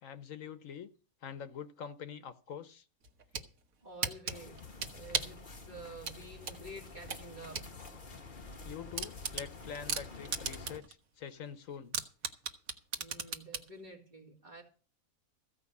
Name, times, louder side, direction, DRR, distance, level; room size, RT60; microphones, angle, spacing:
voice 1, 0.0-0.9 1.2-2.8 8.6-12.0, left 7 dB, 70° left, 12 dB, 1.2 m, -45 dB
sound 1, 3.0-3.5 4.0-5.4 6.0-7.7 8.1-8.2 8.5-8.6 9.0-10.9 11.3-11.4 11.9-13.7, right 6 dB, 80° right, 1.6 m, -36 dB
voice 2, 3.8-7.7 12.9-14.6, right 1 dB, 35° right, -1 dB, 3.0 m, -50 dB
sound 2, 4.3-10.8, left 3 dB, 40° left, 1.3 m, -49 dB
15.0 x 5.4 x 8.3 m, 0.39 s
omnidirectional pair, 1.4 m